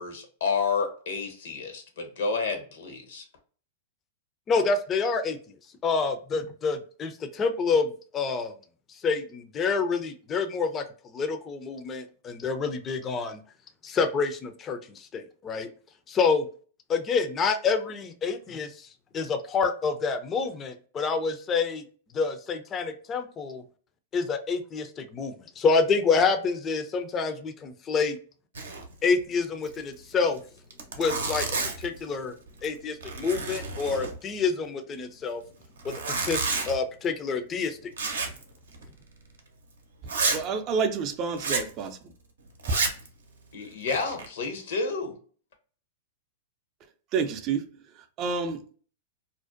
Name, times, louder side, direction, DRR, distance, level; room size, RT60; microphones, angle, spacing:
voice 1, 0.0-3.2 43.5-45.2, left 4 dB, 70° left, 0.7 m, -30 dB
voice 2, 4.5-5.4 5.8-8.5 8.9-13.4 13.8-15.7 16.1-16.5 16.9-18.9 19.1-21.8 22.1-23.6 24.1-28.2 29.0-30.4 31.0-31.5 31.8-32.3 32.6-35.4 35.8-37.8 38.0-38.1, left 4 dB, 25° left, 0.4 m, -27 dB
Zipper (clothing), 28.5-28.9 29.2-29.3 29.6-29.8 30.4-30.5 30.7-32.0 32.5-32.8 33.0-34.4 35.8-36.8 38.0-38.4 38.7-38.9 39.4-39.5 40.1-40.4 41.4-41.7 42.6-43.1 43.6-44.3, right 4 dB, 85° right, 0.6 m, -30 dB
voice 3, 40.3-42.0 42.7-42.8 47.1-48.8, right 5 dB, 40° right, 0.4 m, -29 dB
2.5 x 2.1 x 2.4 m
hypercardioid pair, 110°, 0 cm